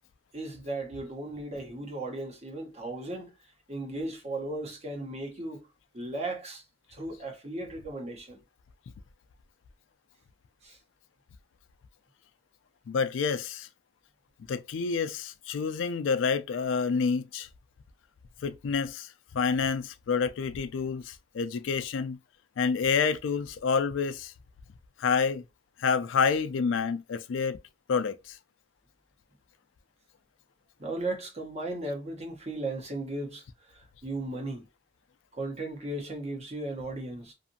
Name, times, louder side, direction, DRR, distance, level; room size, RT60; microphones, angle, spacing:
voice 1, 0.3-3.3 3.7-5.7 5.9-6.6 6.9-8.4 10.6-10.8 30.8-34.6 35.3-37.3, right 2 dB, 35° right, 0.9 m, -36 dB
voice 2, 12.9-13.7 14.5-17.5 18.4-22.2 22.6-24.3 25.0-25.4 25.8-27.6 27.9-28.4, left 5 dB, 85° left, 0.4 m, -28 dB
2.6 x 2.5 x 2.6 m
head